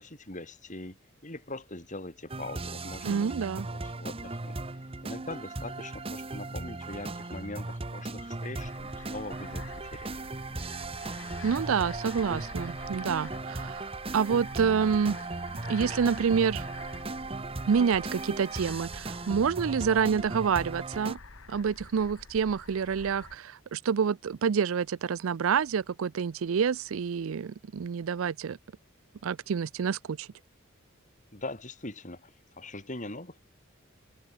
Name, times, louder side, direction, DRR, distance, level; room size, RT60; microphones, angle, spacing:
voice 1, 0.0-4.6 5.0-10.1 31.3-33.4, left 2 dB, 35° left, 4.3 m, -42 dB
sound 1, 2.3-21.2, right 2 dB, 25° right, 1.1 m, -37 dB
voice 2, 3.0-3.7 11.4-15.2 15.7-16.6 17.7-21.2 21.5-28.6 29.2-30.3, right 6 dB, 75° right, 0.4 m, -28 dB
sound 2, 8.6-23.4, left 4 dB, 75° left, 1.6 m, -48 dB
head